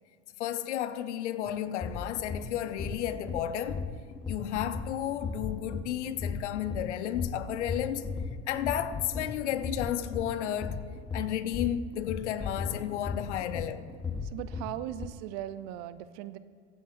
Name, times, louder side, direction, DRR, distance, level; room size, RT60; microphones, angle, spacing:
voice 1, 0.4-3.9 4.3-8.2 8.5-10.9 11.1-13.9, left 11 dB, 80° left, 0.7 m, -32 dB
sound 1, 1.5-15.1, left 4 dB, 15° left, 0.5 m, -37 dB
voice 2, 14.2-16.4, right 13 dB, 55° right, 0.6 m, -38 dB
23.5 x 9.2 x 2.5 m
hypercardioid pair, 85°, 35 cm